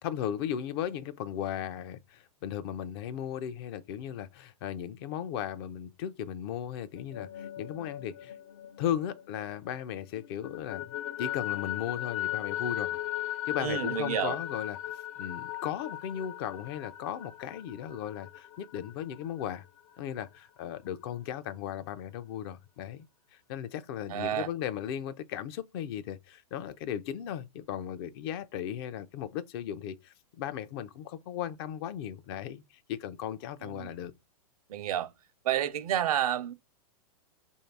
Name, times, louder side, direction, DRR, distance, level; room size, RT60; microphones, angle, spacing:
voice 1, 0.0-8.4 8.8-13.0 13.3-19.6 20.0-23.1 23.3-34.1, left 10 dB, 40° left, 0.5 m, -36 dB
sound 1, 7.0-9.8 10.2-19.6, left 13 dB, 60° left, 0.8 m, -38 dB
voice 2, 13.6-14.4 24.1-24.5 33.6-33.9 34.7-35.1 35.4-36.5, right 10 dB, 70° right, 0.7 m, -30 dB
3.1 x 2.7 x 4.5 m
hypercardioid pair, 140°, 19 cm